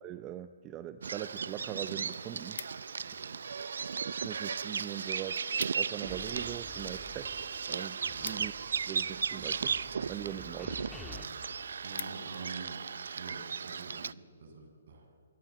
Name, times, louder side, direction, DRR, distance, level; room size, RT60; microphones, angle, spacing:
voice 1, 0.0-2.6 3.9-5.5 5.7-7.3 7.7-8.5 8.9-9.8 10.1-10.7, right 12 dB, 20° right, 11 dB, 0.7 m, -41 dB
Bird vocalization bird call bird song, 1.0-14.1, right 6 dB, 75° right, 0.6 m, -36 dB
sound 1, 2.6-3.2 3.9-4.4 4.7-4.8 5.1-5.2 5.4-6.0 6.4-9.2 9.9-10.3 10.8-10.9 11.2-11.3 11.6-12.6 13.1-13.3, left 7 dB, 60° left, 0.6 m, -47 dB
sound 2, 6.1-7.7 8.0-11.2, left 2 dB, 5° left, 1.8 m, -50 dB
voice 2, 11.8-12.8 13.1-15.2, right 4 dB, 55° right, 2 dB, 7.3 m, -47 dB
28.0 x 22.5 x 8.7 m, 2.4 s
hypercardioid pair, 160°, 0 cm